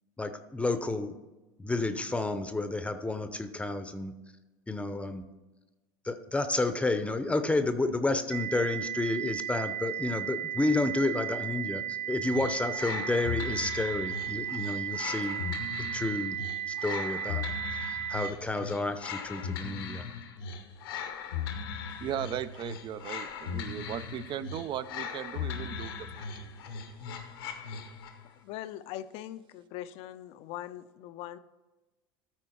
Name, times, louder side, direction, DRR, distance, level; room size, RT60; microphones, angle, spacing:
voice 1, 0.2-1.1 1.6-4.1 4.7-5.2 6.0-15.4 15.9-16.4 16.8-17.5 18.1-20.0, left 2 dB, 10° left, 9 dB, 0.7 m, -30 dB
sound 1, 8.3-18.3, right 11 dB, 70° right, 0.9 m, -35 dB
sound 2, 12.3-28.2, left 6 dB, 85° left, 1.0 m, -38 dB
voice 2, 22.0-26.7, right 10 dB, 45° right, 15 dB, 0.4 m, -37 dB
voice 3, 28.4-31.4, left 13 dB, 60° left, 13 dB, 0.5 m, -41 dB
13.5 x 4.5 x 4.4 m, 1.1 s
supercardioid pair, 95°, 12 cm